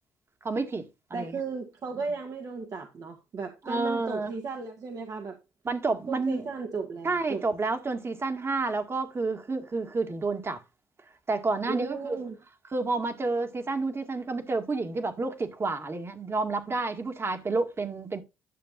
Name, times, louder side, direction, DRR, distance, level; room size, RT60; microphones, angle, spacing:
voice 1, 0.4-1.4 3.7-4.3 5.7-6.5 7.0-10.6 11.3-12.2 12.7-18.2, right 3 dB, 35° right, 1.9 m, -30 dB
voice 2, 1.1-5.4 6.1-7.4 11.7-12.4, right 4 dB, 55° right, 1.7 m, -35 dB
11.0 x 6.9 x 2.5 m
hypercardioid pair, 55°, 7 cm